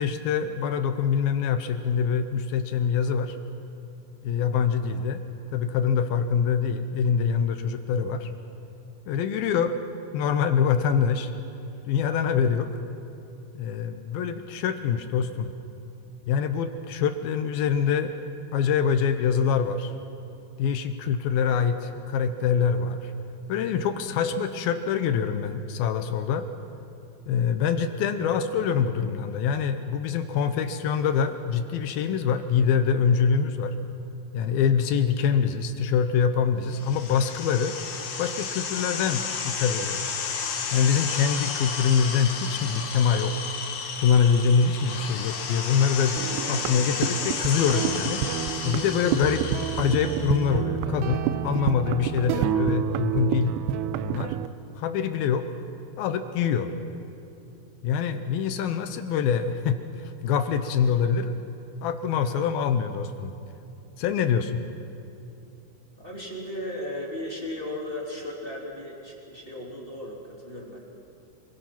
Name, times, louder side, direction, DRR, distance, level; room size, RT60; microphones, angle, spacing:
voice 1, 0.0-3.4 4.2-5.2 5.5-8.3 9.1-9.8 10.1-11.3 11.9-12.7 13.5-15.5 16.3-18.1 18.5-19.9 20.6-23.1 23.5-26.5 27.3-33.7 34.3-37.8 38.2-40.2 40.7-43.4 44.0-46.2 46.5-48.2 48.6-49.5 49.8-53.5 54.0-54.4 54.8-55.5 56.0-56.7 57.8-59.8 60.2-61.3 61.8-63.3 64.0-64.6, left 7 dB, 75° left, 9 dB, 2.6 m, -24 dB
sound 1, 36.7-50.5, left 6 dB, 55° left, 2.6 m, -32 dB
sound 2, 46.2-54.5, right 10 dB, 85° right, 2.7 m, -29 dB
voice 2, 66.0-70.8, left 1 dB, 15° left, -3 dB, 2.6 m, -36 dB
26.5 x 22.0 x 6.0 m, 2.7 s
omnidirectional pair, 4.6 m